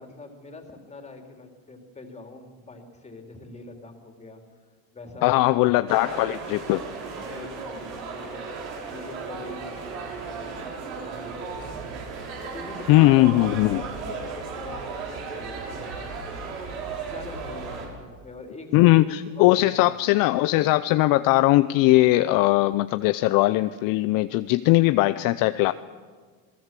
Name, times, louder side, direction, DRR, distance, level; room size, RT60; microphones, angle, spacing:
voice 1, 0.0-4.4 4.9-5.4 6.2-6.3 6.9-16.4 17.0-19.0 19.3-20.1, left 2 dB, 15° left, 4 dB, 3.5 m, -44 dB
voice 2, 5.2-6.8 12.9-13.8 18.7-25.7, left 18 dB, 50° left, 12 dB, 0.7 m, -20 dB
sound 1, 5.9-17.9, right 4 dB, 75° right, 6.4 m, -35 dB
27.5 x 18.5 x 7.6 m, 1.5 s
supercardioid pair, 125°, 43 cm